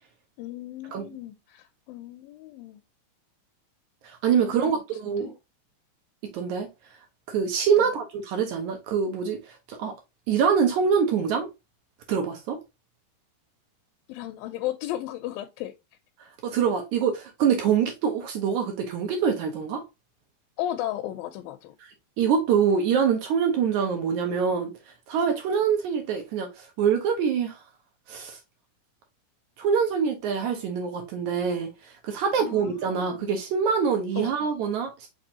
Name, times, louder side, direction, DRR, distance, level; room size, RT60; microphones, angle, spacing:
voice 1, 0.4-2.8 4.4-5.4 7.8-7.9 14.1-15.7 20.6-21.8 32.4-33.3 34.2-34.3, left 13 dB, 85° left, 2.3 m, -35 dB
voice 2, 4.0-5.3 6.3-6.7 7.3-10.0 10.3-11.5 12.1-12.6 16.2-19.8 22.2-24.7 25.1-27.6 28.1-28.4 29.6-35.1, right 7 dB, 70° right, 2.0 m, -25 dB
6.0 x 3.0 x 2.8 m
omnidirectional pair, 4.1 m